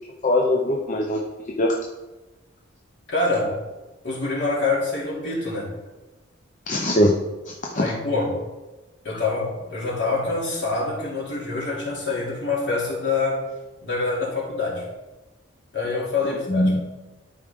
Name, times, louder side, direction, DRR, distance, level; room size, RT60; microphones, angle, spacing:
voice 1, 0.2-1.2 1.6-1.7 6.7-7.1 7.6-7.8 9.1-9.2 16.2-16.8, left 1 dB, 40° left, -1 dB, 0.7 m, -21 dB
voice 2, 3.1-3.6 4.0-5.7 7.7-8.4 9.0-13.4 13.8-14.9 15.7-16.7, left 3 dB, 60° left, -5 dB, 2.8 m, -25 dB
12.0 x 4.9 x 3.7 m, 1.1 s
head